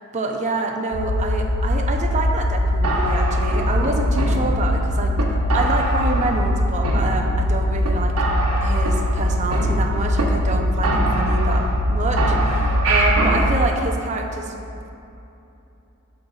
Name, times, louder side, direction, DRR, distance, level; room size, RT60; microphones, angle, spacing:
voice 1, 0.1-5.2 5.5-8.2 8.6-14.5, right 2 dB, 30° right, 2 dB, 0.6 m, -26 dB
sound 1, 0.9-13.6, left 1 dB, 70° left, 0.5 m, -21 dB
sound 2, 2.8-4.8 5.2-5.3 5.5-6.5 6.8-7.5 7.8-7.9 8.2-10.2 10.5-10.6 10.8-11.9 12.2-13.5, right 2 dB, 75° right, 1.0 m, -25 dB
8.8 x 6.5 x 2.4 m, 2.8 s
head